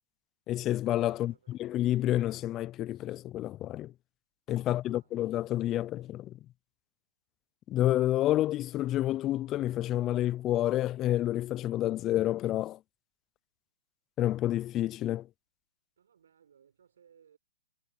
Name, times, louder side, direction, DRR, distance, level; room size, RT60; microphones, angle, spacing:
voice 1, 0.5-3.9 4.5-6.4 7.7-12.8 14.2-15.3, left 13 dB, 20° left, 0.3 m, -29 dB
voice 2, 1.1-1.6 4.7-5.1 16.0-17.4, right 8 dB, 75° right, 5.8 m, -63 dB
hypercardioid pair, 150°, 0 cm